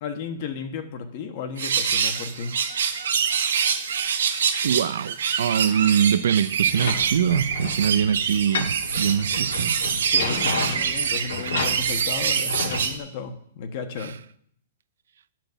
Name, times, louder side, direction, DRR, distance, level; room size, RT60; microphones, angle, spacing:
voice 1, 0.0-2.6 10.1-14.2, left 5 dB, 35° left, 1.2 m, -34 dB
sound 1, 1.6-13.0, right 7 dB, 90° right, 1.4 m, -25 dB
voice 2, 4.6-9.8, right 8 dB, 70° right, 0.5 m, -23 dB
sound 2, 6.7-12.9, left 3 dB, 75° left, 2.4 m, -32 dB
10.0 x 6.0 x 6.8 m
hypercardioid pair, 175°, 0 cm